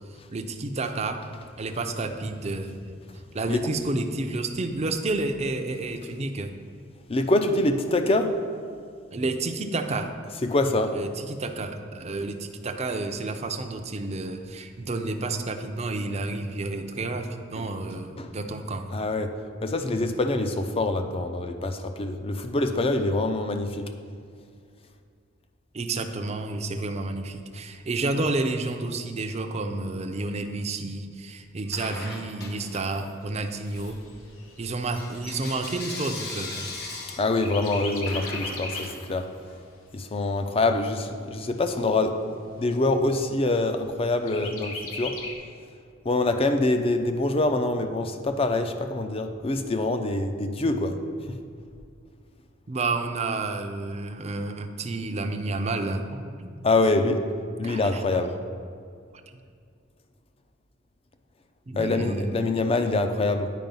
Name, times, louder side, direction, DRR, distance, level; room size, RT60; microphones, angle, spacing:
voice 1, 0.3-1.2 1.6-2.9 3.3-6.5 9.1-10.1 10.9-19.0 25.7-34.0 34.6-36.7 52.7-56.6 57.6-58.2 61.7-62.3, right 2 dB, 35° right, 6 dB, 0.5 m, -30 dB
voice 2, 7.1-8.4 10.4-11.0 17.6-17.7 18.2-18.3 18.9-19.3 19.6-23.9 37.2-39.3 39.9-45.2 46.0-51.0 51.3-51.4 56.6-57.3 57.6-58.3 61.8-63.5, left 2 dB, 30° left, 7 dB, 0.5 m, -25 dB
Bell / Coin (dropping), 31.7-33.2 33.6-39.6, left 3 dB, 50° left, 1.0 m, -40 dB
Chirp tweet, 33.2-37.0 37.4-39.0 39.5-39.6 39.9-40.9 41.5-41.6 41.9-42.0 42.5-43.0 44.3-45.3, left 3 dB, 85° left, 1.0 m, -38 dB
9.3 x 4.8 x 5.3 m, 2.2 s
head